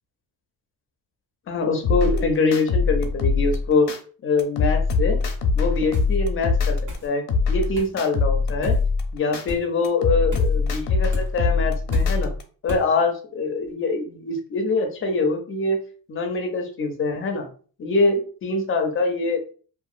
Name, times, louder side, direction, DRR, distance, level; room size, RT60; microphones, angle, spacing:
voice 1, 1.5-3.9 4.2-5.2 5.5-8.8 9.1-12.3 12.6-15.8 16.1-17.5 17.8-19.4, left 3 dB, 35° left, 4 dB, 0.5 m, -24 dB
sound 1, 1.8-4.0 4.4-7.0 7.3-9.4 9.8-12.4, left 4 dB, 90° left, 0.7 m, -22 dB
sound 2, 5.9-6.2 6.9-7.1 7.7-7.9 8.6-8.8 9.5-9.6 10.3-10.6 11.1-11.3 11.9-12.2 12.7-12.9, left 2 dB, 50° right, 1.3 m, -33 dB
2.8 x 2.4 x 2.4 m, 0.41 s
cardioid pair, 155°, 38 cm